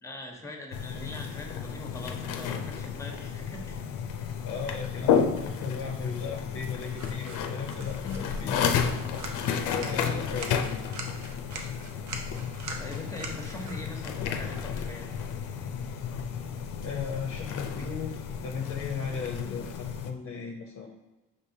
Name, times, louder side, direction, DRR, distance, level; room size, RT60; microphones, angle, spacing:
voice 1, 0.0-3.8 9.7-10.3 12.8-15.1, left 1 dB, 10° left, 2 dB, 0.9 m, -42 dB
sound 1, 0.7-20.1, left 7 dB, 90° left, 0.5 m, -32 dB
voice 2, 4.4-8.8 9.7-10.7 16.8-20.9, left 6 dB, 45° left, -1 dB, 0.7 m, -36 dB
sound 2, 6.9-16.0, right 3 dB, 65° right, 0.8 m, -45 dB
5.2 x 3.7 x 2.7 m, 1.1 s
cardioid pair, 90°, 30 cm